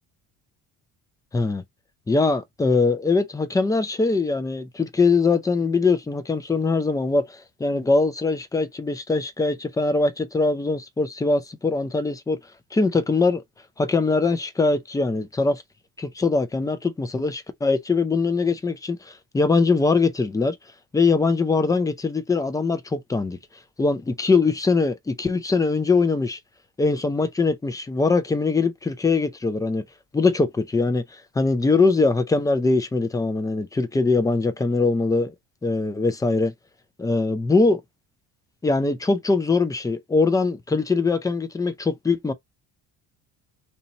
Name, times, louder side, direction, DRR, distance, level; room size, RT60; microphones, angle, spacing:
voice 1, 1.3-1.6 2.1-12.4 12.7-13.4 13.8-15.6 16.0-20.6 20.9-23.4 23.8-26.4 26.8-29.8 30.1-35.3 35.6-36.5 37.0-37.8 38.6-42.3, left 3 dB, 10° left, 0.4 m, -22 dB
2.9 x 2.8 x 3.9 m
cardioid pair, 125°, 38 cm